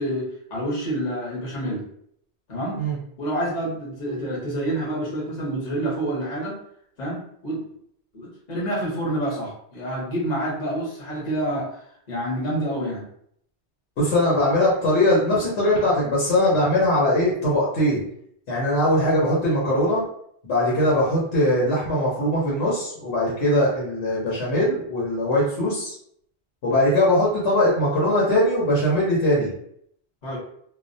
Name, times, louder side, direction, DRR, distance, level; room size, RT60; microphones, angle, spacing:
voice 1, 0.0-1.9 2.5-2.8 3.2-6.6 7.0-7.6 8.1-13.1 30.2-30.4, right 1 dB, 45° left, -5 dB, 1.0 m, -28 dB
voice 2, 14.0-18.0 18.5-20.0 20.4-25.9 26.6-29.5, left 1 dB, 80° left, -6 dB, 1.1 m, -21 dB
2.3 x 2.1 x 2.6 m, 0.68 s
omnidirectional pair, 1.1 m